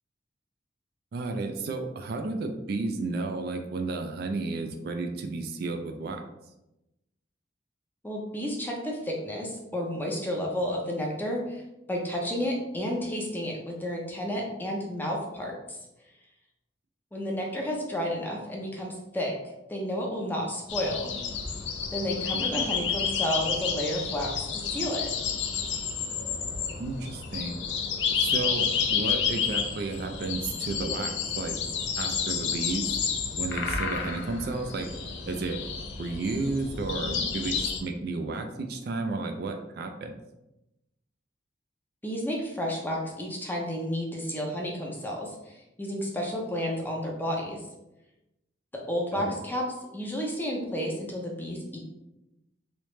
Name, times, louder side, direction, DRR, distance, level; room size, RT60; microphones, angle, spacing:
voice 1, 1.1-6.2 22.3-22.6 26.8-27.7 28.1-31.6 32.0-33.0 33.4-34.9 35.3-35.6 36.0-40.2 49.1-49.4, right 3 dB, 55° right, 5 dB, 0.4 m, -32 dB
voice 2, 8.0-11.6 11.9-15.8 17.1-19.4 19.7-21.1 21.9-25.1 42.0-47.6 48.7-49.7 49.9-51.8, equal, 10° left, -1 dB, 0.6 m, -31 dB
sound 1, 20.7-37.8, left 6 dB, 75° left, 0.5 m, -30 dB
3.2 x 2.9 x 3.1 m, 0.94 s
head